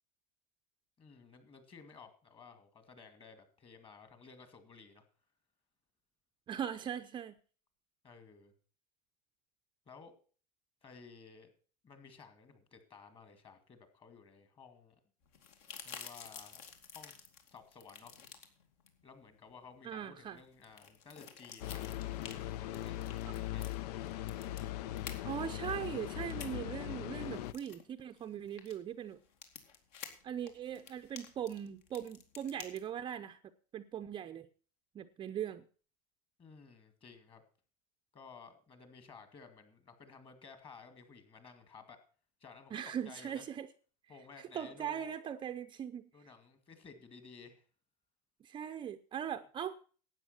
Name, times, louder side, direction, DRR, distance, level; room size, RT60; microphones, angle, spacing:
voice 1, 1.0-5.0 8.0-8.5 9.9-10.1 10.8-11.5 11.8-15.0 15.8-16.6 16.9-18.2 19.0-21.9 22.2-23.7 36.4-37.4 38.1-42.0 42.4-43.4 44.1-45.2 46.1-47.6, left 5 dB, 25° left, 9 dB, 2.4 m, -55 dB
voice 2, 6.5-7.4 19.8-20.4 25.2-29.2 30.2-33.4 33.7-34.5 34.9-35.6 42.7-43.7 44.4-46.1 48.4-49.8, right 9 dB, 25° right, 8 dB, 0.6 m, -40 dB
sound 1, 15.2-32.8, left 7 dB, 60° left, 2.6 m, -52 dB
sound 2, 21.6-27.5, left 13 dB, 80° left, 0.6 m, -40 dB
12.0 x 9.0 x 5.9 m, 0.40 s
supercardioid pair, 140°, 20 cm